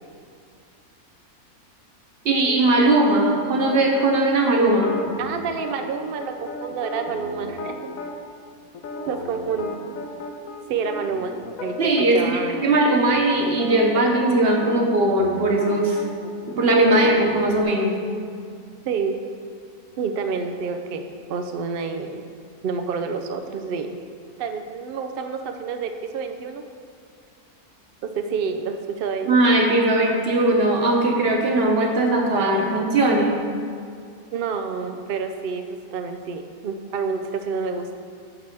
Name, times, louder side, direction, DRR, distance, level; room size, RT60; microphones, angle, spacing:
voice 1, 2.2-5.0 11.8-16.0 16.5-18.0 29.3-33.4, right 2 dB, 45° right, 1 dB, 1.2 m, -19 dB
sound 1, 3.6-4.1 4.7-8.1 8.7-12.3 12.6-12.8 13.1-17.6, left 2 dB, 70° left, 1.2 m, -35 dB
voice 2, 5.2-7.7 9.1-9.8 10.7-11.4 11.6-12.7 18.9-19.2 20.0-22.2 22.6-24.0 24.4-26.6 28.0-29.4 34.3-37.9, right 5 dB, 80° right, 6 dB, 0.5 m, -28 dB
9.7 x 3.4 x 6.6 m, 2.3 s
omnidirectional pair, 1.6 m